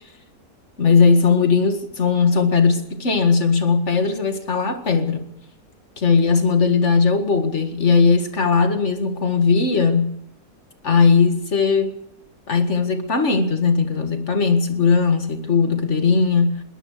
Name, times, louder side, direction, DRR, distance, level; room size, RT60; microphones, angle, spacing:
voice 1, 0.8-5.3 6.0-10.2 10.8-11.9 12.5-16.6, left 5 dB, 50° left, 2.1 m, -18 dB
21.5 x 18.0 x 6.6 m
omnidirectional pair, 1.6 m